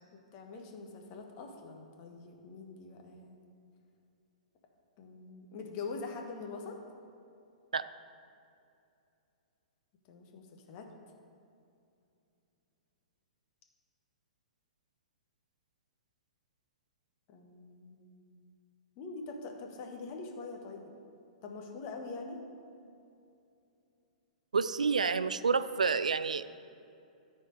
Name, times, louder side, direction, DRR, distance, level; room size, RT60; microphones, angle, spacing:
voice 1, 0.3-3.4 5.0-6.8 10.1-10.9 17.3-18.2 19.0-20.9 21.4-22.4, left 4 dB, 40° left, 2 dB, 1.3 m, -44 dB
voice 2, 24.5-26.6, right 5 dB, 80° right, 14 dB, 0.3 m, -29 dB
13.0 x 4.4 x 5.2 m, 2.6 s
figure-of-eight pair, 110°, 4 cm